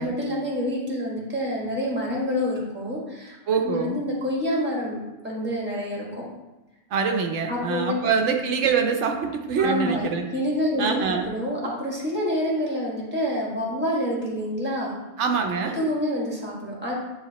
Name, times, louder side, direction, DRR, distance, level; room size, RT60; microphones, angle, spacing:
voice 1, 0.0-3.4 3.6-6.2 7.5-8.0 9.6-15.0 15.6-16.9, left 1 dB, 10° right, -4 dB, 1.5 m, -27 dB
voice 2, 3.5-4.0 6.9-10.3 10.8-11.3 15.2-15.9, right 5 dB, 80° right, 3 dB, 1.0 m, -24 dB
10.5 x 3.5 x 2.9 m, 1.0 s
omnidirectional pair, 1.2 m